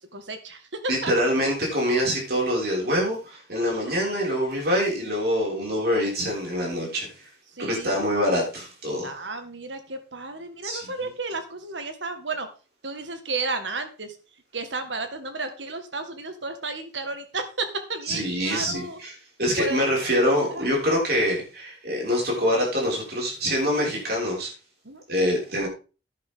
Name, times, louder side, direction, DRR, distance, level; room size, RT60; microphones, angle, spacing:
voice 1, 0.1-1.1 7.5-8.0 9.0-12.5 12.8-14.2 14.5-19.0 19.6-19.9 20.5-20.7 24.8-25.0, right 3 dB, 80° right, 7 dB, 2.0 m, -33 dB
voice 2, 0.9-7.3 7.6-9.1 10.6-10.9 18.1-19.1 19.4-24.5 25.1-25.7, equal, 55° right, -2 dB, 6.2 m, -25 dB
11.0 x 10.5 x 3.9 m, 0.34 s
head